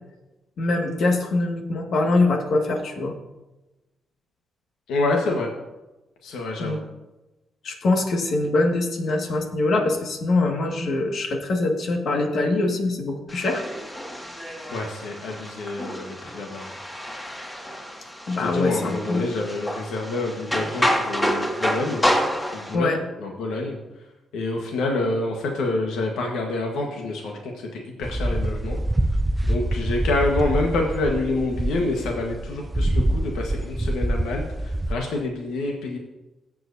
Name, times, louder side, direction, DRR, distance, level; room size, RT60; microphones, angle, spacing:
voice 1, 0.6-3.1 6.6-6.8 7.6-13.6 18.3-19.3 22.7-23.0, left 2 dB, 70° left, 3 dB, 1.9 m, -23 dB
voice 2, 4.9-5.5 6.2-6.8 14.7-16.7 18.4-22.1 22.5-23.8 24.3-28.8 29.5-36.0, left 2 dB, 85° left, 1 dB, 1.4 m, -27 dB
sound 1, 13.3-22.8, equal, 20° left, 2.0 m, -28 dB
sound 2, 28.0-35.0, right 1 dB, 20° right, 0.5 m, -25 dB
17.5 x 7.6 x 2.7 m, 1.1 s
supercardioid pair, 55°, 0 cm